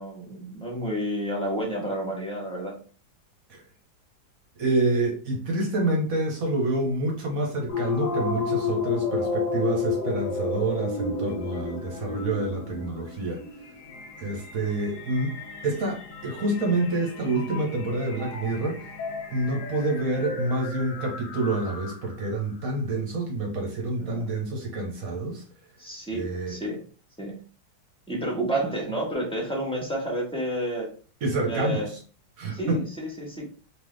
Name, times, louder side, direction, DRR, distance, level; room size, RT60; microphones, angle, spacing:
voice 1, 0.0-2.8 24.0-24.3 25.8-26.8 27.2-27.3 28.1-30.9 31.5-31.9 32.5-33.5, right 1 dB, 5° left, 1.3 m, -30 dB
voice 2, 4.6-13.4 14.2-15.3 15.6-18.9 19.3-25.4 26.1-26.5 31.2-32.0 32.4-32.8, right 2 dB, 55° right, 1.4 m, -27 dB
sound 1, 7.7-22.2, left 4 dB, 55° left, 1.0 m, -32 dB
3.7 x 3.2 x 3.3 m
omnidirectional pair, 2.0 m